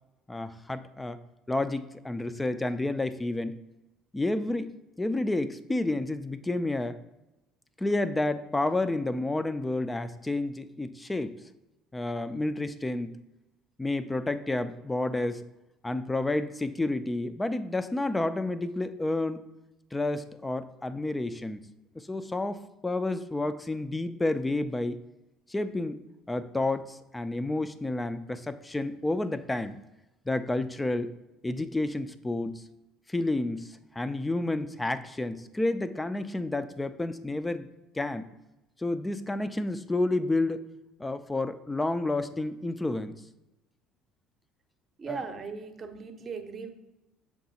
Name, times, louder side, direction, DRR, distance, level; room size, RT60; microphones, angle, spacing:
voice 1, 0.3-1.2 1.5-3.6 4.1-7.0 7.8-11.3 11.9-13.2 13.8-15.5 15.8-19.4 19.9-21.6 22.0-25.0 25.5-26.0 26.3-29.8 30.3-31.1 31.4-32.6 33.1-37.7 37.9-38.2 38.8-40.6 41.0-43.1 45.1-45.2, left 2 dB, 15° left, 13 dB, 0.4 m, -30 dB
voice 2, 45.0-46.7, right 5 dB, 35° right, 7 dB, 0.8 m, -38 dB
7.3 x 4.7 x 2.8 m, 0.99 s
figure-of-eight pair, 60°, 0 cm